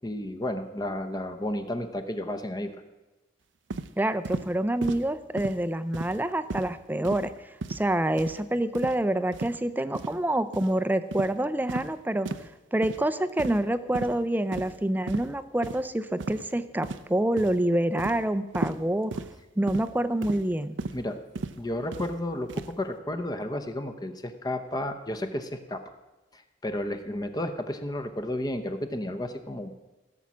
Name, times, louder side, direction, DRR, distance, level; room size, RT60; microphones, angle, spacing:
voice 1, 0.0-2.7 20.9-21.2 21.6-25.8 26.3-29.7, left 1 dB, 20° left, 7 dB, 0.8 m, -32 dB
sound 1, 3.7-3.9 4.2-4.5 4.8-5.0 5.4-5.6 5.9-6.2 6.5-6.7 7.0-7.3 7.6-7.9 8.2-8.4 8.7-9.0 9.3-9.5 9.9-10.1 10.5-10.7 11.1-11.3 11.7-11.9 12.2-12.5 12.8-13.0 13.4-13.7 13.9-14.1 14.5-14.8 15.1-15.3 15.6-15.8 16.2-16.5 16.8-17.1 17.4-17.6 18.0-18.2 18.5-18.8 19.1-19.3 19.7-19.9 20.2-20.4 20.8-21.0 21.3-21.6 21.9-22.1 22.5-22.7, right 3 dB, 85° right, 0.6 m, -34 dB
voice 2, 4.0-7.3 7.7-12.3 12.7-19.1 19.6-20.8, right 1 dB, 10° right, 12 dB, 0.5 m, -27 dB
16.0 x 7.0 x 6.2 m, 1.1 s
head